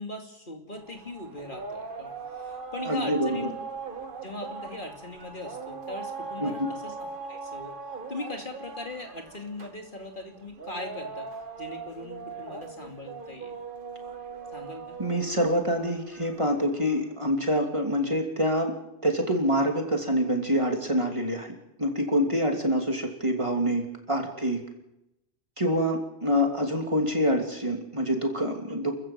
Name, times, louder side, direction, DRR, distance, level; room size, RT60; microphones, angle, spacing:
voice 1, 0.0-3.5 4.2-7.7 8.1-11.3 11.6-13.6 14.5-15.0 22.3-22.5, left 2 dB, 50° left, 3 dB, 2.7 m, -40 dB
sound 1, 0.8-17.1, right 4 dB, 55° right, 1.6 m, -40 dB
voice 2, 2.8-3.3 6.4-6.7 15.0-18.7 19.0-21.5 21.8-24.6 25.6-28.9, equal, 30° right, 2 dB, 3.0 m, -26 dB
28.5 x 14.5 x 7.6 m, 0.91 s
omnidirectional pair, 1.1 m